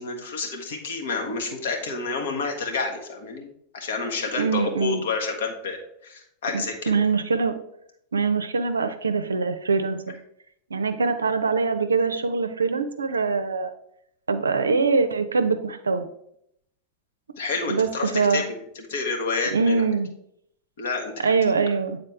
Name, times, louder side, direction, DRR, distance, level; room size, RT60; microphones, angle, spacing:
voice 1, 0.0-3.5 3.7-6.9 17.4-19.9 20.8-21.1, left 4 dB, 60° left, 3 dB, 1.3 m, -29 dB
voice 2, 4.4-5.0 6.5-7.5 8.1-10.2 10.7-13.7 14.3-16.1 17.7-18.4 19.5-20.1 21.2-22.0, right 4 dB, 75° right, 9 dB, 0.5 m, -23 dB
8.7 x 3.9 x 3.4 m, 0.73 s
figure-of-eight pair, 90°, 0 cm